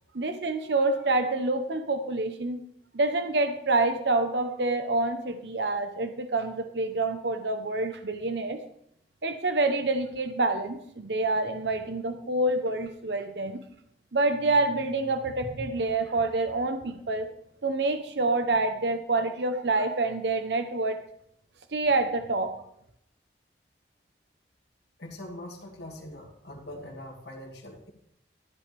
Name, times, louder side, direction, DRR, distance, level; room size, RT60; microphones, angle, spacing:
voice 1, 0.1-2.6 2.9-8.6 9.2-13.6 14.1-17.3 17.6-21.0 21.7-22.5, right 2 dB, 75° right, 8 dB, 0.9 m, -27 dB
voice 2, 25.0-27.9, left 1 dB, 75° left, 0 dB, 2.3 m, -42 dB
13.5 x 11.0 x 3.4 m, 0.72 s
head